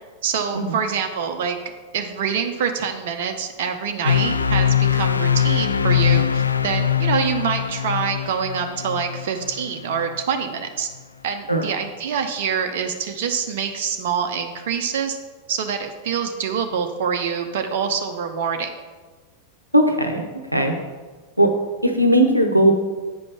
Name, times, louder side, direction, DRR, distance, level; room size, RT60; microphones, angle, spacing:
voice 1, 0.2-1.6 1.9-10.9 11.2-15.2 15.5-18.7, right 7 dB, 55° right, 5 dB, 0.8 m, -25 dB
sound 1, 4.0-10.2, left 8 dB, 75° left, 0.4 m, -21 dB
voice 2, 19.7-20.7 21.4-21.5 21.8-22.7, right 1 dB, 90° right, 4 dB, 0.8 m, -18 dB
8.6 x 5.3 x 5.9 m, 1.3 s
figure-of-eight pair, 90°, 0 cm